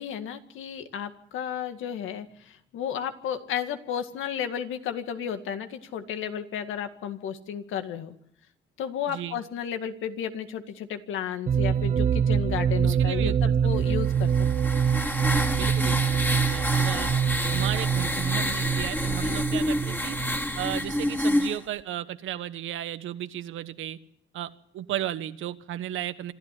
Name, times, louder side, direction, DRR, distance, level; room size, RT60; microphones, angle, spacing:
voice 1, 0.0-8.2 8.8-14.7, left 9 dB, 85° left, 8 dB, 2.0 m, -33 dB
voice 2, 9.1-9.4 12.8-13.5 15.5-16.2 16.5-17.1 17.5-20.2 20.6-24.0 24.3-24.5 24.7-26.3, right 12 dB, 80° right, 12 dB, 1.4 m, -34 dB
sound 1, 11.5-21.1, right 8 dB, 40° right, 0.8 m, -25 dB
sound 2, 14.1-21.6, left 1 dB, 10° left, 2.6 m, -28 dB
26.0 x 13.0 x 10.0 m, 0.74 s
cardioid pair, 90°, 20 cm